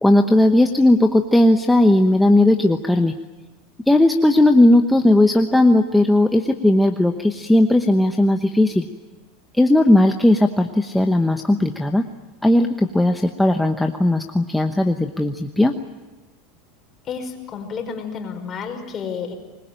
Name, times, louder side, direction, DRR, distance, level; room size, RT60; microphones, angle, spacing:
voice 1, 0.0-3.1 3.9-8.9 9.6-12.0 12.4-15.7, left 1 dB, 5° left, 4 dB, 1.0 m, -16 dB
voice 2, 17.0-19.3, left 6 dB, 30° left, 4 dB, 5.2 m, -30 dB
25.0 x 21.5 x 9.1 m, 1.1 s
supercardioid pair, 140°, 0 cm